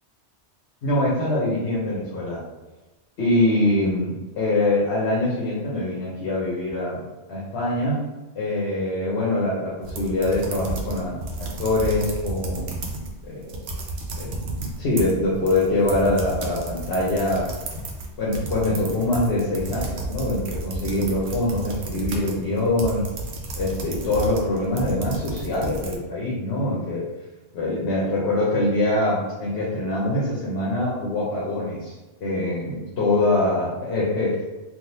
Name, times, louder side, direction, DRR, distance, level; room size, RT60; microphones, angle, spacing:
voice 1, 0.8-2.4 3.2-8.0 8.3-13.6 14.1-17.5 18.2-23.1 23.5-27.0 27.5-34.4, left 2 dB, 65° left, -6 dB, 1.0 m, -24 dB
sound 1, 9.8-13.1 13.4-25.9, right 2 dB, 70° right, 0.9 m, -32 dB
3.4 x 2.6 x 2.7 m, 1.1 s
omnidirectional pair, 1.2 m